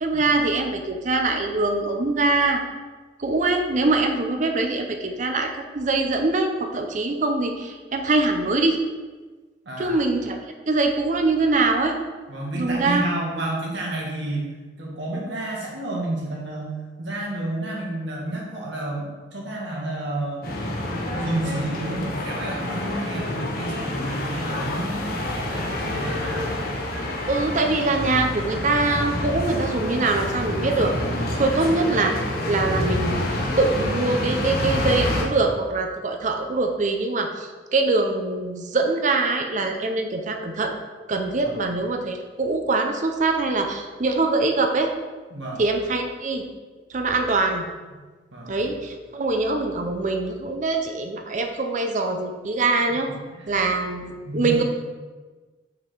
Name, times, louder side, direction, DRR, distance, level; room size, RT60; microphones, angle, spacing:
voice 1, 0.0-2.6 3.2-5.5 5.7-8.8 9.8-10.4 10.7-12.0 12.6-13.0 27.3-30.9 31.4-32.1 32.5-40.7 41.1-44.9 45.6-46.4 46.9-47.6 48.5-53.1 53.5-54.6, right 3 dB, 45° right, 4 dB, 0.6 m, -23 dB
voice 2, 9.7-10.0 12.3-14.5 14.8-20.5 21.1-26.6 31.3-31.6 41.4-41.6 45.3-45.6 47.9-48.0 48.3-48.6 53.0-53.6 54.3-54.6, right 1 dB, 80° right, -3 dB, 1.9 m, -31 dB
sound 1, 20.4-35.2, left 1 dB, 55° left, 1.1 m, -27 dB
5.9 x 5.2 x 4.5 m, 1.3 s
head